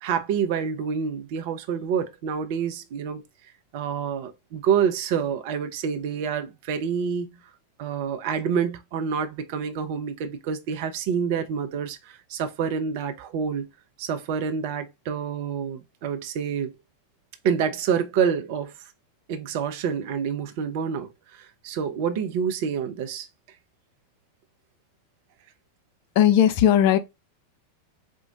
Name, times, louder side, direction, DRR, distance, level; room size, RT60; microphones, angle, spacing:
voice 1, 0.0-3.2 3.7-7.4 7.8-13.7 14.0-16.7 17.4-18.7 19.3-23.3, right 7 dB, 50° right, 0.8 m, -27 dB
voice 2, 26.1-27.0, left 10 dB, 50° left, 0.6 m, -17 dB
4.6 x 2.5 x 3.8 m
figure-of-eight pair, 90°, 0 cm